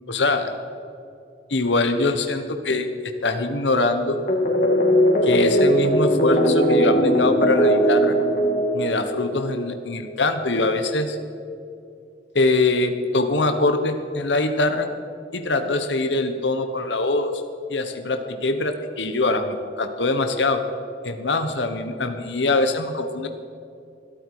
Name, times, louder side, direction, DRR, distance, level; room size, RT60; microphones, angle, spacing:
voice 1, 0.1-0.5 1.5-2.9 3.2-4.2 5.2-8.2 8.7-11.2 12.3-14.9 15.3-17.3 17.7-20.6 21.0-23.3, left 2 dB, 85° left, 7 dB, 1.2 m, -23 dB
sound 1, 4.3-9.4, equal, 45° left, 2.4 m, -19 dB
21.5 x 12.5 x 4.9 m, 2.7 s
head